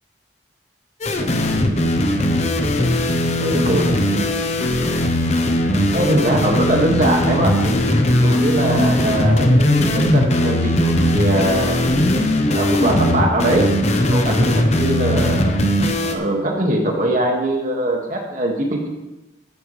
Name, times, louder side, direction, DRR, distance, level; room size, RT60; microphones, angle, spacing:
sound 1, 1.0-16.2, left 1 dB, 35° left, 0.9 m, -18 dB
voice 1, 3.4-3.8 5.9-7.5 8.1-11.8 12.5-13.7 14.1-15.5 16.0-18.9, right 1 dB, 45° right, 0 dB, 2.0 m, -21 dB
13.0 x 10.0 x 3.3 m, 1.0 s
head